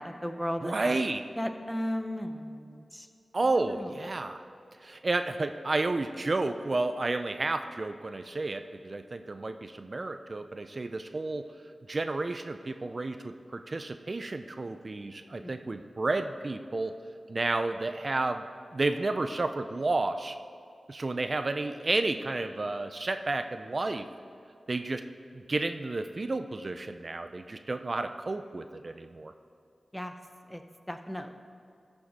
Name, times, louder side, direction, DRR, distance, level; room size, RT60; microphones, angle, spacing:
voice 1, 0.0-1.0 1.4-3.1 3.6-3.9 15.4-15.5 29.9-30.1 30.5-30.6 30.9-31.3, equal, 5° left, 7 dB, 0.7 m, -35 dB
voice 2, 0.6-1.2 3.3-4.4 4.8-11.5 11.9-16.9 17.3-18.4 18.7-20.4 20.9-24.1 24.7-25.1 25.3-29.3, right 2 dB, 50° right, 9 dB, 0.4 m, -31 dB
14.0 x 7.0 x 4.0 m, 2.4 s
cardioid pair, 55°, 0 cm